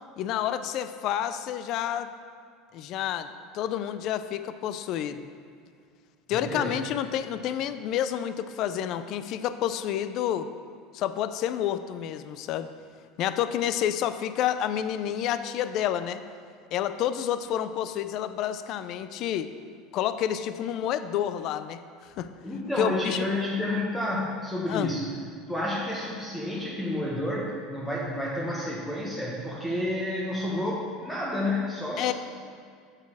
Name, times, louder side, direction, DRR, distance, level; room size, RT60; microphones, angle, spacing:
voice 1, 0.2-2.1 2.7-5.3 6.3-10.5 10.9-12.7 13.2-16.2 16.7-19.5 19.9-22.3 22.8-23.3 24.7-24.9 32.0-32.1, left 10 dB, 55° left, 12 dB, 0.4 m, -29 dB
voice 2, 6.3-6.8 22.4-25.1 25.5-32.1, left 1 dB, 10° left, -5 dB, 1.2 m, -30 dB
8.1 x 6.5 x 4.8 m, 2.2 s
supercardioid pair, 110°, 0 cm